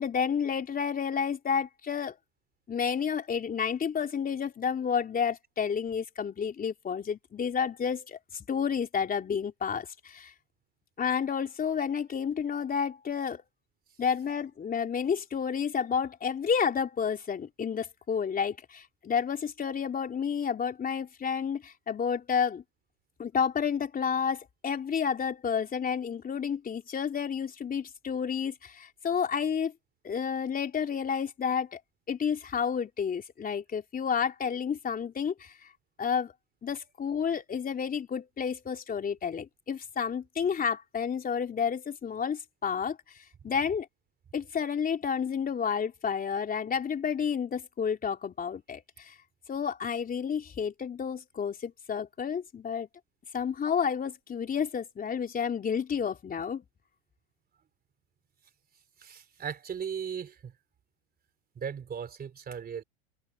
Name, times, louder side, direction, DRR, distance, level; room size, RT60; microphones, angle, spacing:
voice 1, 0.0-2.1 2.7-10.3 11.0-13.4 14.0-22.6 23.2-29.7 30.0-31.8 32.1-35.7 36.0-36.3 36.6-43.0 43.4-43.9 44.3-49.1 49.5-52.9 53.3-56.6, left 7 dB, 25° left, 3.4 m, -30 dB
voice 2, 58.7-60.6 61.6-62.8, right 7 dB, 30° right, 3.7 m, -38 dB
hypercardioid pair, 100°, 33 cm